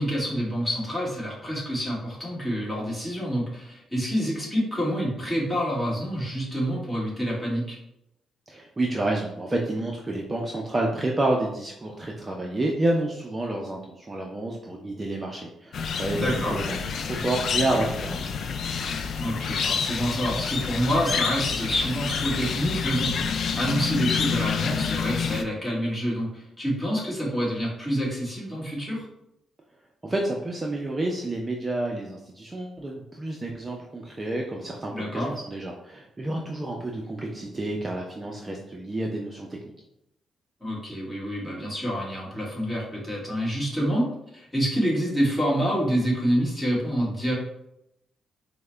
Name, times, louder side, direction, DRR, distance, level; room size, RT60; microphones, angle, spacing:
voice 1, 0.0-7.8 16.2-16.6 19.2-29.0 34.9-35.3 40.6-44.1 44.3-47.3, equal, 15° left, -5 dB, 1.5 m, -27 dB
voice 2, 8.5-16.8 17.0-18.2 30.0-39.5, right 2 dB, 20° right, 0 dB, 0.5 m, -29 dB
sound 1, 15.7-25.4, left 6 dB, 60° left, 0.3 m, -28 dB
4.6 x 2.1 x 3.3 m, 0.81 s
cardioid pair, 105°, 0 cm